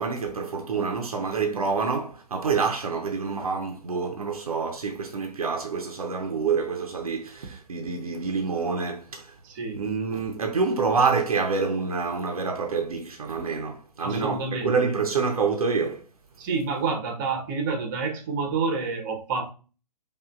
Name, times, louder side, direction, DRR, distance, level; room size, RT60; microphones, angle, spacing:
voice 1, 0.0-9.3 9.7-16.0, right 5 dB, 60° right, 0.7 m, -27 dB
voice 2, 9.4-9.8 14.0-14.7 16.4-19.5, right 4 dB, 30° right, 0.8 m, -28 dB
4.9 x 2.5 x 2.4 m
figure-of-eight pair, 125°, 21 cm